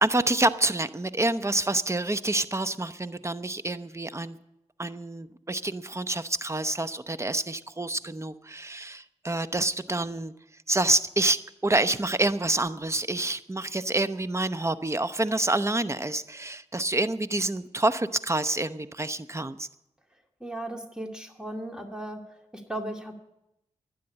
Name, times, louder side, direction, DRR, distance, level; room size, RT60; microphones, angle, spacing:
voice 1, 0.0-4.4 4.8-10.3 10.7-19.7, right 2 dB, 20° right, 12 dB, 0.9 m, -27 dB
voice 2, 20.4-22.2 22.5-23.1, right 1 dB, 5° right, 3 dB, 2.3 m, -36 dB
12.0 x 10.5 x 8.7 m, 0.85 s
cardioid pair, 50°, 13 cm